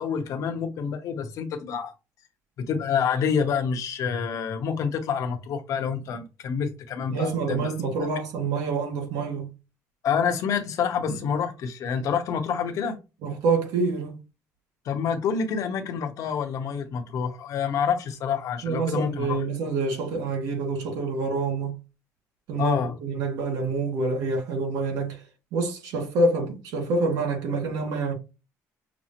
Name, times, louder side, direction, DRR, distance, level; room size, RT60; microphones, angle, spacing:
voice 1, 0.0-1.9 2.6-7.7 8.0-8.1 10.0-13.0 14.8-19.4 22.6-22.9, left 7 dB, 60° left, 0.9 m, -27 dB
voice 2, 7.1-9.5 13.2-14.2 18.6-21.8 22.5-25.2 25.5-28.1, right 3 dB, 80° right, 1.9 m, -27 dB
6.1 x 2.1 x 2.9 m
cardioid pair, 125°, 6 cm